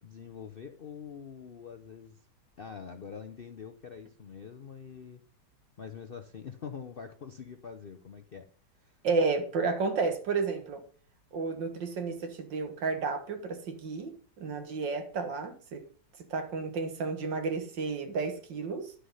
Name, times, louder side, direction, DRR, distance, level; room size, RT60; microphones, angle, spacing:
voice 1, 0.0-2.2 2.6-5.2 5.8-8.5 8.8-9.0, left 6 dB, 60° left, 0.6 m, -45 dB
voice 2, 9.0-10.8 11.3-14.1 14.4-15.9 16.3-18.9, right 4 dB, 90° right, 2.2 m, -31 dB
11.0 x 6.8 x 5.5 m
omnidirectional pair, 1.9 m